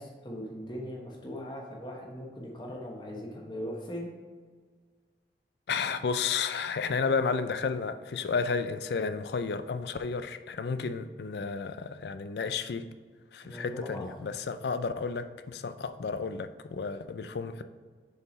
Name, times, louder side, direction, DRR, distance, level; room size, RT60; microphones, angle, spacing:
voice 1, 0.0-4.1 5.8-6.0 13.4-14.0, equal, 25° left, -2 dB, 1.2 m, -40 dB
voice 2, 5.7-12.8 13.3-17.6, left 5 dB, 70° left, 11 dB, 0.4 m, -32 dB
6.6 x 4.6 x 4.1 m, 1.5 s
head